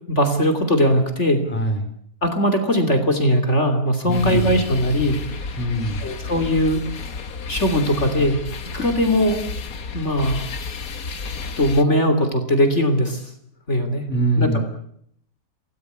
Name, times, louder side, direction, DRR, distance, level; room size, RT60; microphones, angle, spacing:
voice 1, 0.1-1.5 2.2-5.5 6.0-6.8 7.5-8.4 8.7-9.4 9.9-10.4 11.6-13.3 13.7-14.1 14.4-14.6, equal, 45° left, 6 dB, 3.4 m, -20 dB
voice 2, 1.5-1.9 4.1-4.6 5.6-6.1 14.1-14.6, right 1 dB, 5° left, 6 dB, 3.5 m, -23 dB
sound 1, 4.1-11.8, left 4 dB, 65° left, 1.8 m, -32 dB
27.0 x 18.0 x 8.3 m, 0.69 s
omnidirectional pair, 1.6 m